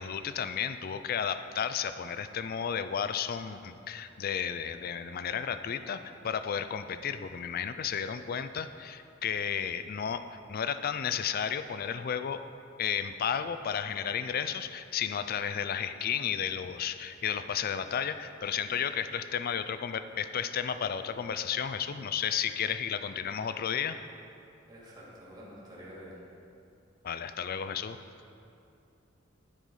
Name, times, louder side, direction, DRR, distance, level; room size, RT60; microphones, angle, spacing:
voice 1, 0.0-12.4 12.8-24.0 27.0-28.0, left 8 dB, 50° left, 11 dB, 0.4 m, -33 dB
voice 2, 24.7-26.3, equal, 20° right, -7 dB, 2.3 m, -48 dB
13.0 x 4.8 x 5.5 m, 2.7 s
head